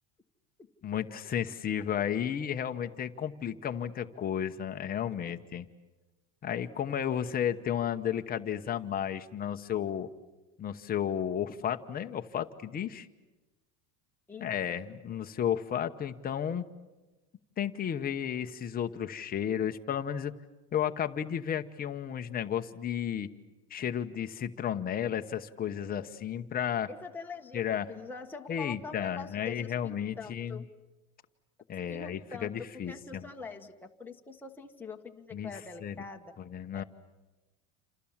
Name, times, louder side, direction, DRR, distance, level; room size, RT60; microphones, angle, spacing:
voice 1, 0.8-5.7 6.4-10.1 10.6-13.1 14.4-16.7 17.6-20.3 20.7-23.3 23.7-26.9 27.5-27.9 28.5-30.6 31.7-33.3 35.3-35.5 35.8-36.0 36.4-36.8, left 9 dB, 20° left, 7 dB, 1.0 m, -33 dB
voice 2, 26.9-30.7 31.9-36.3 36.7-36.8, left 4 dB, 5° left, 1 dB, 1.3 m, -44 dB
28.5 x 28.0 x 7.3 m, 1.1 s
cardioid pair, 165°, 42 cm